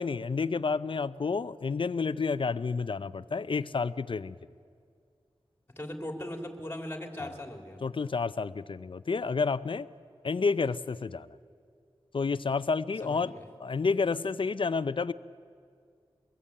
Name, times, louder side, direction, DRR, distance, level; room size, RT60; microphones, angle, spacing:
voice 1, 0.0-4.4 7.2-7.3 7.8-9.9 10.2-11.3 12.1-13.3 13.6-15.1, left 4 dB, 60° left, 15 dB, 0.5 m, -30 dB
voice 2, 5.8-7.8 13.0-13.5, left 1 dB, 20° left, 4 dB, 3.1 m, -39 dB
23.5 x 21.0 x 8.6 m, 2.2 s
wide cardioid pair, 90°, 10 cm